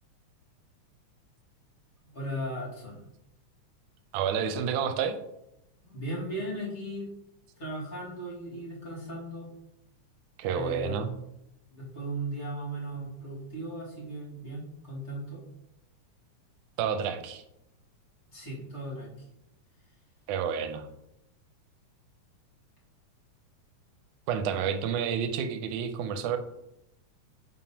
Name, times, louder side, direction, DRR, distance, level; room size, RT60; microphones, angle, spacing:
voice 1, 2.1-3.1 5.8-7.1 7.6-9.5 10.5-11.2 11.7-15.4 18.3-19.3, right 1 dB, 30° left, -6 dB, 1.7 m, -37 dB
voice 2, 4.1-5.2 10.4-11.1 16.8-17.4 20.3-20.9 24.3-26.4, right 7 dB, 90° right, 8 dB, 2.0 m, -29 dB
7.3 x 5.4 x 2.8 m, 0.84 s
omnidirectional pair, 3.5 m